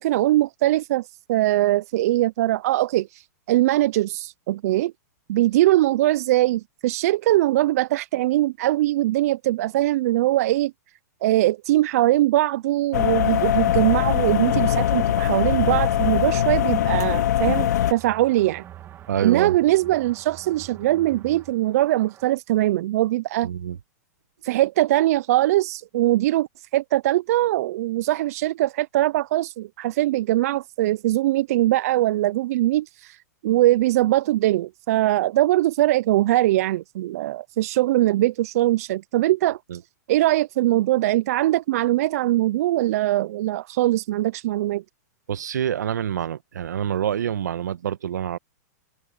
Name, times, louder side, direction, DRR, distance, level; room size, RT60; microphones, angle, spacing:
voice 1, 0.0-4.9 5.3-10.7 11.2-18.6 19.2-23.5 24.4-26.5 26.7-39.6 40.1-44.8, right 15 dB, 60° right, 0.4 m, -21 dB
sound 1, 12.9-17.9, left 11 dB, 75° left, 1.9 m, -21 dB
sound 2, 15.5-22.3, right 12 dB, 25° right, 2.0 m, -43 dB
voice 2, 19.1-19.6 23.4-23.8 39.7-39.8 45.3-48.4, right 9 dB, 90° right, 1.1 m, -26 dB
open air
hypercardioid pair, 140°, 9 cm